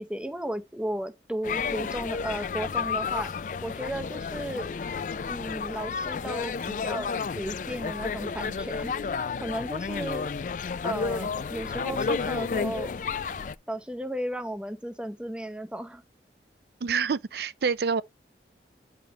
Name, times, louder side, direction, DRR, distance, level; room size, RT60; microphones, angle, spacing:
voice 1, 0.0-3.3 3.6-4.7 5.3-8.9 9.4-10.3 10.8-12.9 13.7-16.0, right 1 dB, 5° right, 0.6 m, -34 dB
sound 1, 1.4-13.5, left 5 dB, 45° left, 0.3 m, -31 dB
voice 2, 16.8-18.0, right 5 dB, 65° right, 0.5 m, -27 dB
9.1 x 5.1 x 2.9 m
head